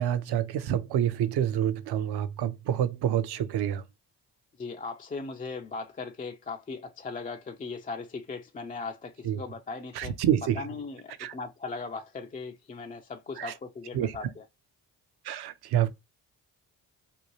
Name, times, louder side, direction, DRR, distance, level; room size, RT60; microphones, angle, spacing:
voice 1, 0.0-3.8 9.2-9.4 9.9-10.6 11.2-11.3 13.4-13.5 13.9-14.2 15.2-15.9, right 10 dB, 55° right, 0.6 m, -27 dB
voice 2, 4.6-10.2 10.6-14.4, left 4 dB, 20° left, 0.3 m, -38 dB
2.7 x 2.2 x 3.0 m
hypercardioid pair, 45°, 48 cm